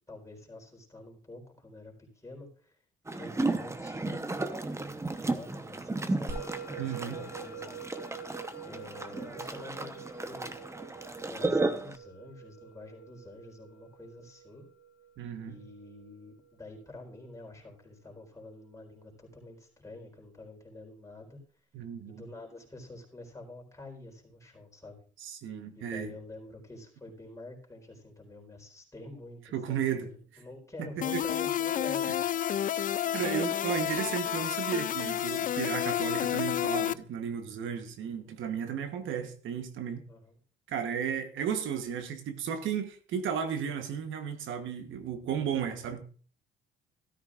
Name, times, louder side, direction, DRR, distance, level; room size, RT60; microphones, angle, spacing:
voice 1, 0.1-2.8 3.2-4.3 4.6-7.8 8.6-10.7 11.3-14.7 15.4-21.4 22.1-25.0 25.7-32.1 40.1-40.4, left 2 dB, 15° left, 4.3 m, -48 dB
sound 1, 3.1-12.0, right 2 dB, 15° right, 0.9 m, -34 dB
Musical instrument, 6.3-16.9, right 5 dB, 55° right, 5.9 m, -46 dB
voice 2, 6.8-7.2 15.2-15.6 21.7-22.2 25.2-26.1 29.5-30.4 30.8-31.2 33.1-40.0 40.7-46.0, right 7 dB, 80° right, 1.2 m, -34 dB
sound 2, 31.0-36.9, left 10 dB, 45° left, 0.4 m, -30 dB
13.5 x 13.0 x 2.5 m
cardioid pair, 90°, 20 cm